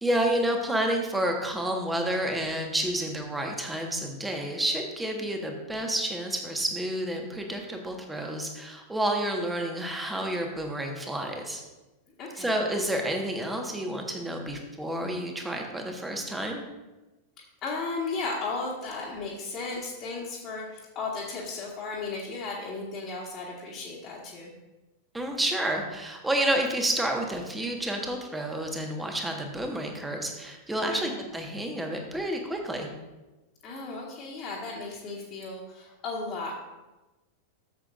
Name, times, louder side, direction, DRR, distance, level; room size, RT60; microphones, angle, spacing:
voice 1, 0.0-11.6 12.4-16.6 25.1-32.9, right 1 dB, 10° right, 2 dB, 1.5 m, -30 dB
voice 2, 12.2-12.6 17.6-24.5 30.9-31.2 33.6-36.6, left 3 dB, 35° left, -6 dB, 1.9 m, -35 dB
13.5 x 7.7 x 2.6 m, 1.1 s
figure-of-eight pair, 90°, 0 cm